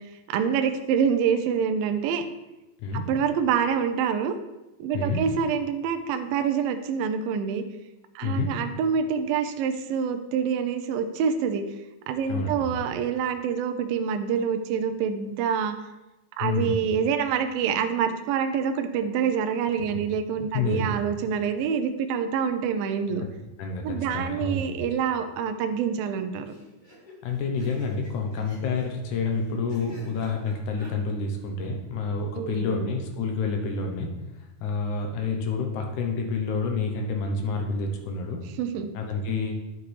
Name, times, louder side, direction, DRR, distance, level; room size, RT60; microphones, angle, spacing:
voice 1, 0.3-2.3 2.9-4.3 4.8-7.6 8.2-11.6 12.1-15.8 16.4-23.2 23.8-26.5 32.4-32.9 38.6-38.9, right 7 dB, 80° right, 7 dB, 2.3 m, -26 dB
voice 2, 8.2-8.5 12.3-12.6 16.4-16.8 20.5-21.0 23.6-24.7 27.2-34.1 34.6-38.4 38.9-39.6, left 4 dB, 70° left, 3 dB, 2.0 m, -28 dB
sound 1, 24.6-25.1 25.4-25.5 25.7-25.8 26.5-30.9, left 1 dB, 35° left, 0.7 m, -51 dB
9.4 x 7.2 x 3.3 m, 1.0 s
omnidirectional pair, 4.4 m